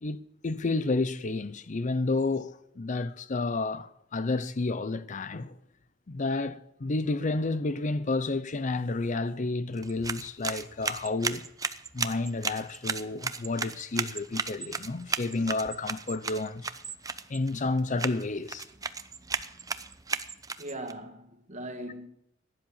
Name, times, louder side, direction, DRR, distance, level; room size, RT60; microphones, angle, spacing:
voice 1, 0.0-5.6 6.1-11.4 11.9-16.7 17.3-18.6, left 3 dB, 40° left, 0.6 m, -30 dB
sound 1, 9.7-20.9, right 4 dB, 20° right, 0.7 m, -35 dB
voice 2, 20.6-22.1, right 1 dB, 40° right, 2.0 m, -39 dB
16.5 x 10.5 x 7.1 m
head